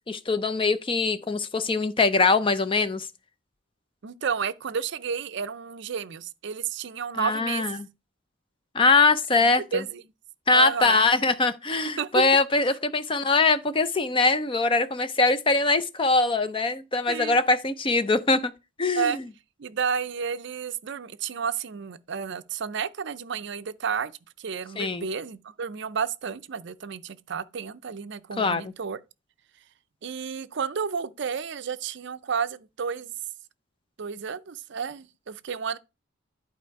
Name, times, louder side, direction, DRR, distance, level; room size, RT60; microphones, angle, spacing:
voice 1, 0.1-3.1 7.2-7.8 8.7-9.8 10.5-18.5 18.8-19.2 24.8-25.1 28.4-28.7, left 3 dB, 25° left, 0.5 m, -22 dB
voice 2, 4.0-7.7 9.3-10.0 10.5-11.0 12.0-12.2 12.7-12.8 17.1-17.4 19.0-19.2 19.6-24.1 24.4-29.0 30.0-33.1 34.0-35.8, right 6 dB, 55° right, 0.5 m, -31 dB
11.0 x 4.1 x 4.6 m
head